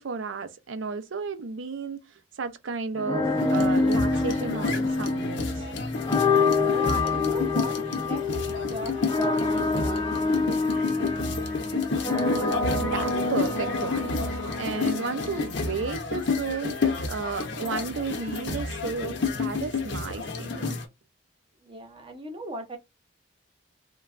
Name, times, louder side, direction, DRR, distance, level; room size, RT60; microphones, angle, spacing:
voice 1, 0.0-5.7 12.8-20.8, right 4 dB, 85° right, 0.5 m, -33 dB
sound 1, 3.0-15.9, left 3 dB, 20° left, 0.5 m, -27 dB
sound 2, 3.4-20.9, left 4 dB, 65° left, 0.6 m, -30 dB
voice 2, 6.7-8.2 8.7-10.0 21.6-22.8, right 1 dB, 30° right, 0.7 m, -37 dB
3.2 x 2.2 x 2.4 m
head